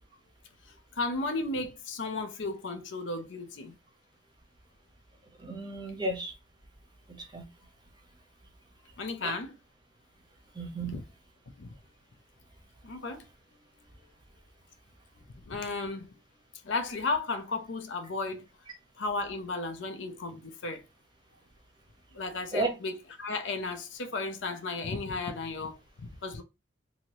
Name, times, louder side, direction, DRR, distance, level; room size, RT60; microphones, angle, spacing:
voice 1, 1.0-3.7 9.0-9.6 10.8-11.0 11.6-11.7 12.8-13.2 15.3-16.1 16.6-18.5 19.0-20.8 22.1-26.4, left 3 dB, 65° left, 0.5 m, -34 dB
voice 2, 5.4-6.3 7.1-7.4 9.2-9.3 10.5-10.9 22.5-22.7, right 2 dB, 20° right, 0.7 m, -33 dB
2.7 x 2.7 x 3.0 m
head